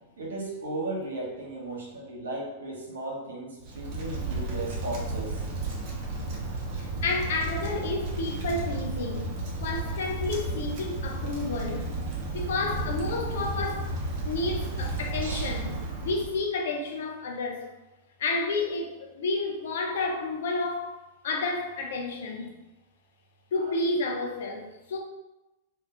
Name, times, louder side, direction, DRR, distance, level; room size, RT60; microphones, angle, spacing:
voice 1, 0.2-5.3 15.2-15.4, right 2 dB, 75° right, -2 dB, 0.9 m, -35 dB
Wind, 3.6-16.4, right 2 dB, 45° right, 0.8 m, -33 dB
voice 2, 6.8-11.9 12.3-13.9 14.2-17.7 18.2-21.0 21.2-22.6 23.5-25.0, left 3 dB, 65° left, 2 dB, 0.6 m, -31 dB
2.7 x 2.3 x 3.6 m, 1.0 s
figure-of-eight pair, 100°, 0 cm